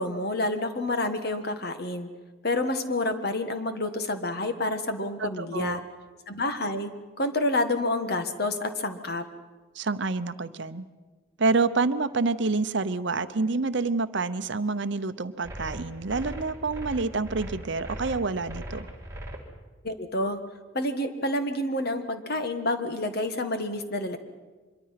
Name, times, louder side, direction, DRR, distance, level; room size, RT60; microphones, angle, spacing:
voice 1, 0.0-2.1 2.4-5.8 6.3-6.9 7.2-9.2 19.8-20.4 20.7-24.2, left 2 dB, 50° left, 8 dB, 1.5 m, -28 dB
voice 2, 5.2-5.8 9.7-10.8 11.4-18.9, right 3 dB, 60° right, 12 dB, 0.8 m, -27 dB
sound 1, 15.4-19.4, right 1 dB, 15° right, 2.7 m, -38 dB
25.0 x 22.5 x 5.9 m, 1.3 s
head